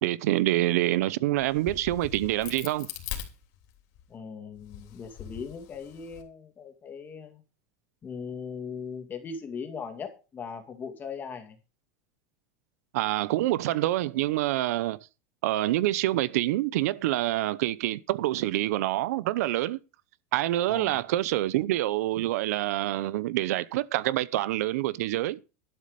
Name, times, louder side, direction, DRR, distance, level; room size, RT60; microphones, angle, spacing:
voice 1, 0.0-2.9 12.9-15.0 15.4-19.8 20.3-25.4, right 15 dB, 80° right, 0.7 m, -26 dB
Crack, 1.4-4.0 4.6-6.2, left 10 dB, 55° left, 3.4 m, -41 dB
voice 2, 4.1-7.4 8.0-11.6 20.7-21.0, left 6 dB, 20° left, 2.4 m, -39 dB
12.0 x 8.6 x 5.2 m
supercardioid pair, 155°, 8 cm